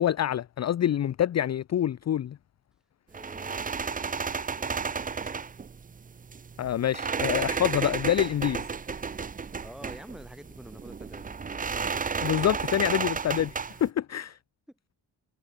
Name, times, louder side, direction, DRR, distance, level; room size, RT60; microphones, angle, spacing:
voice 1, 0.0-2.4 6.6-8.6 12.2-14.4, left 10 dB, 40° left, 0.5 m, -26 dB
voice 2, 3.1-5.5 9.1-11.4 14.7-14.8, equal, ahead, 7.0 m, -49 dB
sound 1, 3.1-13.9, right 5 dB, 20° right, 0.4 m, -33 dB
cardioid pair, 65°, 44 cm